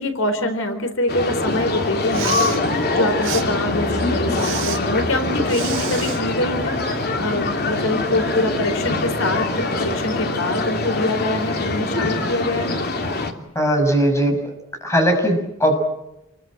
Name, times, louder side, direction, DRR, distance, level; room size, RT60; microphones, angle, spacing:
voice 1, 0.0-12.8, left 1 dB, 80° left, 7 dB, 4.1 m, -24 dB
sound 1, 1.1-13.3, left 2 dB, 50° left, 3.1 m, -23 dB
Respiratory sounds, 2.0-2.6 3.2-3.4 4.3-4.8 5.5-6.2, right 10 dB, 80° right, 4.1 m, -29 dB
voice 2, 13.5-14.3 14.8-15.8, equal, 15° left, 4 dB, 6.9 m, -18 dB
28.5 x 22.5 x 7.7 m, 0.88 s
head